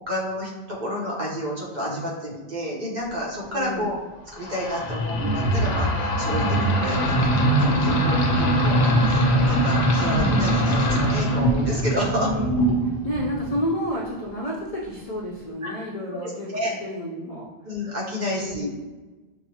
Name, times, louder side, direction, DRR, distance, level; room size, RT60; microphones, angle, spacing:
voice 1, 0.1-4.0 4.3-12.3 15.6-16.8 17.6-18.7, left 1 dB, 45° right, -5 dB, 1.0 m, -30 dB
voice 2, 3.5-3.9 12.0-12.7 13.0-16.5 16.8-17.5 18.2-18.7, equal, 45° left, -5 dB, 0.5 m, -30 dB
sound 1, 4.4-13.7, right 1 dB, 75° left, 0.9 m, -22 dB
5.8 x 2.1 x 2.8 m, 1.2 s
omnidirectional pair, 1.0 m